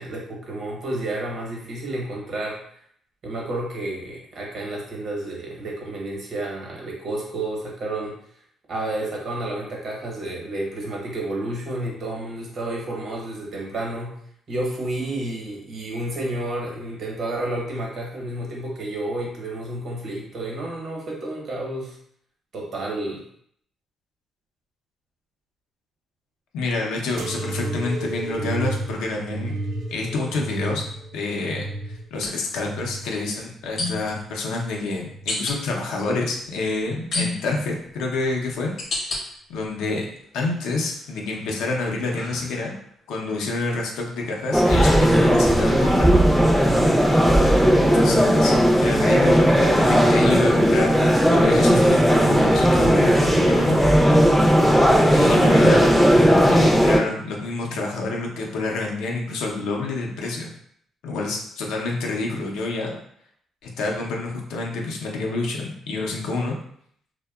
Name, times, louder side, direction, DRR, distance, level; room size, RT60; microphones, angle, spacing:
voice 1, 0.0-2.6 3.2-8.2 8.7-14.2 14.5-22.0 22.5-23.2, right 1 dB, 60° right, -2 dB, 0.9 m, -30 dB
voice 2, 26.5-29.6 29.9-30.8 31.1-31.7 32.1-39.2 39.5-40.1 40.3-42.8 43.1-46.3 47.8-48.5 48.8-50.9 51.2-53.8 55.1-55.9 56.5-60.5 61.0-63.0 63.6-66.5, left 3 dB, 90° left, 0 dB, 0.5 m, -28 dB
sound 1, 27.2-34.4 34.9-35.7 36.4-37.0 37.9-38.1, right 2 dB, 75° right, 0.4 m, -33 dB
sound 2, 32.1-32.3 33.8-34.2 35.3-35.6 37.1-37.7 38.3-39.2 39.8-40.4 40.9-42.9, left 2 dB, 60° left, 0.8 m, -31 dB
sound 3, 44.5-57.0, equal, ahead, 0.4 m, -16 dB
2.7 x 2.1 x 2.3 m, 0.67 s
cardioid pair, 90°, 0 cm